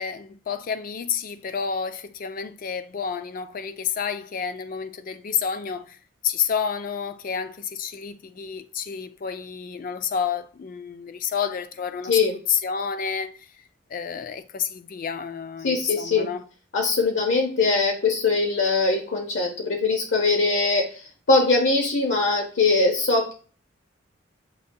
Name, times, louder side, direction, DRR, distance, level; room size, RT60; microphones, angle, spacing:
voice 1, 0.0-6.0 6.2-12.2 12.5-13.5 13.9-16.4, left 7 dB, 45° left, 0.3 m, -29 dB
voice 2, 15.6-16.3 16.7-21.0 21.3-23.3, left 3 dB, 70° left, 0.8 m, -21 dB
6.5 x 2.2 x 2.6 m
head